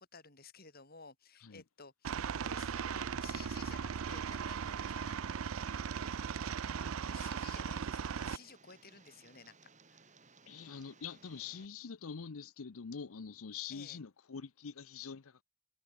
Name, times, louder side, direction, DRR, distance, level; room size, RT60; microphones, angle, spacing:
voice 1, 0.0-5.2 5.4-5.8 6.6-10.2 13.7-14.0, left 5 dB, 40° left, 6.3 m, -55 dB
Aircraft, 2.0-8.4, right 6 dB, 65° right, 0.5 m, -38 dB
Tick, 2.7-11.7, right 4 dB, 30° right, 6.6 m, -61 dB
voice 2, 10.5-15.4, left 6 dB, 70° left, 0.7 m, -45 dB
head